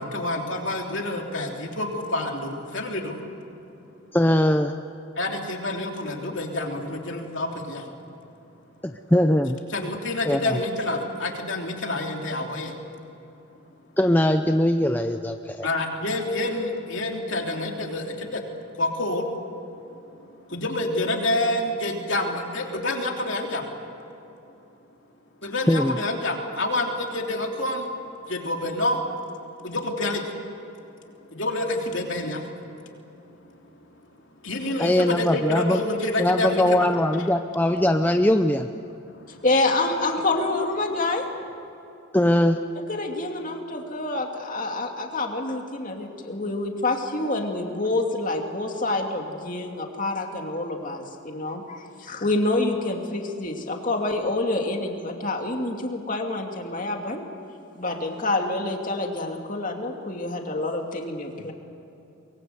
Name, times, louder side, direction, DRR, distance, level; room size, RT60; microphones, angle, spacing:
voice 1, 0.0-3.2 5.2-7.9 9.7-12.7 15.6-18.4 18.8-19.2 20.5-23.7 25.4-27.8 28.2-29.0 29.6-30.2 31.3-32.4 34.4-36.9 39.1-39.4, left 2 dB, 60° left, 1 dB, 3.2 m, -28 dB
voice 2, 4.1-4.7 8.8-9.6 10.3-10.6 14.0-15.7 25.4-26.0 34.8-35.8 36.2-38.7 42.1-42.6, left 1 dB, 10° left, 6 dB, 0.6 m, -21 dB
voice 3, 39.4-41.2 42.8-57.2 57.7-61.5, left 2 dB, 35° left, 2 dB, 2.5 m, -27 dB
24.0 x 23.0 x 7.9 m, 2.9 s
head